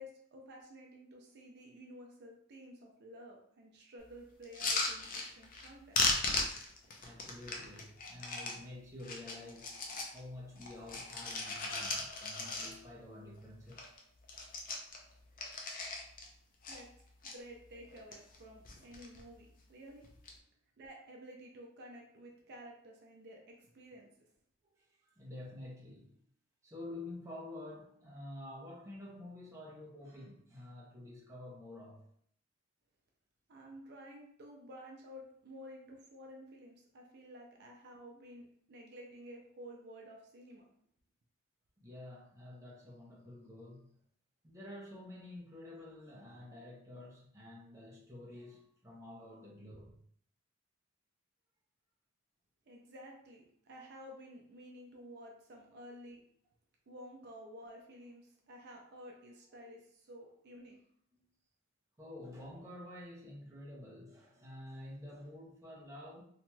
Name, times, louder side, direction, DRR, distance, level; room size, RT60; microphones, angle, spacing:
voice 1, 0.0-6.2 16.7-16.9 17.2-20.0 20.8-24.3 33.5-40.7 52.7-56.2 56.9-60.8, equal, 55° right, 0.5 m, -52 dB
sound 1, 4.4-5.7 5.9-8.6 9.0-10.2 10.5-13.0 13.4-13.5 13.7-14.0 14.2-16.3 16.6-17.3 17.9-18.4 18.6-19.2 20.0-20.3, left 3 dB, 45° left, 0.5 m, -37 dB
voice 2, 7.0-9.8 10.1-13.9 24.8-26.2 26.6-32.0 41.8-44.0 44.4-50.0 61.1-61.2 62.0-66.2, left 1 dB, 15° right, 0.7 m, -49 dB
2.9 x 2.8 x 2.2 m
head